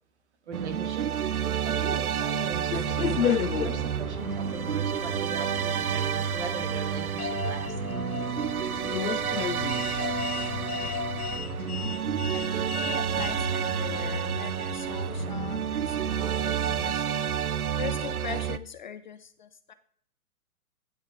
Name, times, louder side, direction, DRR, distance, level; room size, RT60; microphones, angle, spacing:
voice 1, 0.5-7.8, right 4 dB, 50° right, 7 dB, 2.1 m, -39 dB
sound 1, 0.5-18.6, right 8 dB, 75° right, 0.7 m, -30 dB
sound 2, 2.7-16.9, left 8 dB, 85° left, 0.6 m, -34 dB
voice 2, 12.3-19.7, left 7 dB, 35° left, 12 dB, 0.5 m, -41 dB
12.0 x 8.9 x 3.8 m, 0.64 s
figure-of-eight pair, 125°, 43 cm